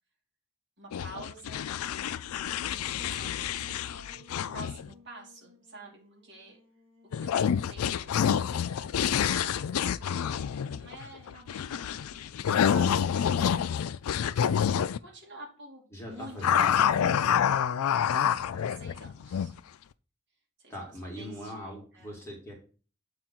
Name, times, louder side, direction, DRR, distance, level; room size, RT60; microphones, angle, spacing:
voice 1, 0.8-2.4 3.0-6.6 7.1-8.2 8.7-13.8 15.0-17.1 18.0-19.5 20.6-22.2, right 2 dB, 50° right, -1 dB, 2.7 m, -49 dB
sound 1, 0.9-4.9 7.1-15.0 16.4-19.6, left 8 dB, 80° left, 0.4 m, -28 dB
Singing, 2.5-7.4, left 4 dB, 70° right, 1.8 m, -59 dB
voice 2, 15.9-17.6 20.7-22.5, equal, 10° left, -2 dB, 2.2 m, -41 dB
8.3 x 3.8 x 4.4 m, 0.36 s
head